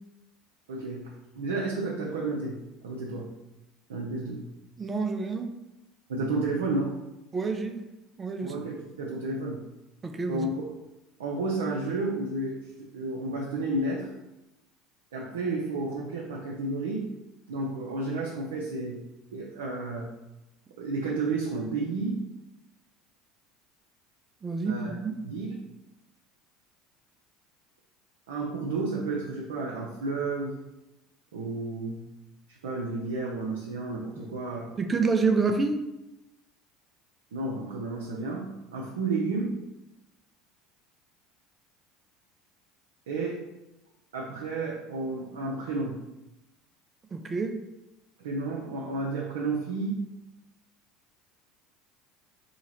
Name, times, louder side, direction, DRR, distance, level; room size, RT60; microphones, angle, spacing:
voice 1, 0.7-3.3 3.9-4.5 6.1-6.9 8.4-9.6 10.3-10.6 11.2-12.7 12.9-14.1 15.1-17.1 17.5-19.0 19.3-20.1 20.8-22.2 24.6-24.9 25.2-25.7 28.3-30.5 31.3-32.1 32.5-34.8 37.3-39.6 43.1-43.4 44.1-46.0 48.2-50.0, right 3 dB, 75° right, -3 dB, 0.5 m, -31 dB
voice 2, 4.8-5.5 7.3-7.8 8.2-8.5 10.0-10.5 24.4-25.1 34.2-34.3 34.8-35.8 47.1-47.5, right 4 dB, 25° right, 6 dB, 0.5 m, -27 dB
2.9 x 2.8 x 4.1 m, 0.97 s
hypercardioid pair, 70°, 0 cm